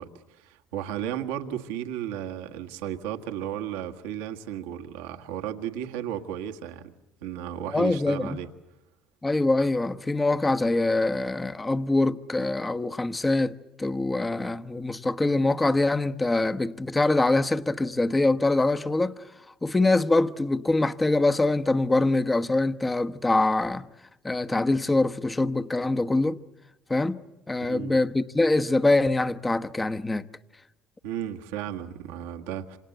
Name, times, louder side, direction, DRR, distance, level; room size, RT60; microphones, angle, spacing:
voice 1, 0.0-6.9 7.2-8.5 27.6-28.0 31.0-32.8, right 10 dB, 80° right, 1.7 m, -34 dB
voice 2, 7.7-8.4 9.2-19.2 19.6-23.9 24.2-26.4 26.9-27.2 27.5-30.2, left 2 dB, 20° left, 1.2 m, -24 dB
27.5 x 26.5 x 8.0 m
hypercardioid pair, 65°, 0 cm